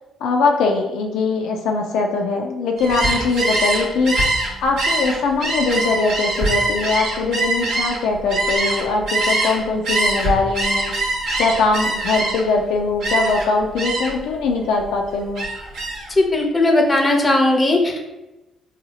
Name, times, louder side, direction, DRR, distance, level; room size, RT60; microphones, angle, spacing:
voice 1, 0.2-4.1 4.6-10.9 11.4-15.5, left 3 dB, 85° left, 2 dB, 0.4 m, -21 dB
Gull seagull, 2.8-9.6 9.8-12.6 13.0-13.5 13.8-14.2 14.6-16.1, right 2 dB, 80° right, 1.1 m, -23 dB
voice 2, 16.2-18.1, left 2 dB, 25° left, 3 dB, 0.7 m, -17 dB
4.0 x 2.4 x 2.7 m, 1.0 s
cardioid pair, 90°, 0 cm